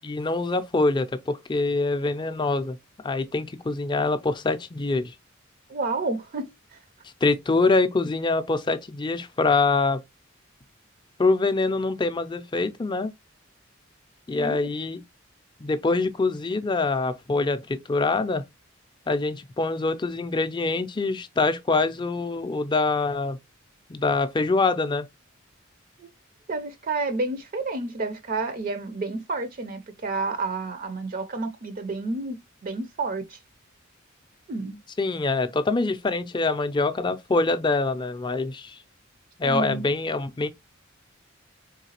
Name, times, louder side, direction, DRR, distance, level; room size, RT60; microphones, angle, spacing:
voice 1, 0.0-2.8 3.0-5.1 7.2-10.0 11.2-13.1 14.3-15.0 15.6-18.4 19.1-23.4 23.9-25.1 35.0-38.8 39.4-40.5, left 3 dB, 20° left, 0.4 m, -24 dB
voice 2, 5.7-6.8 14.3-14.6 26.0-26.1 26.5-33.4 34.5-34.8 39.4-39.9, right 3 dB, 45° right, 0.5 m, -30 dB
3.9 x 3.2 x 2.8 m
head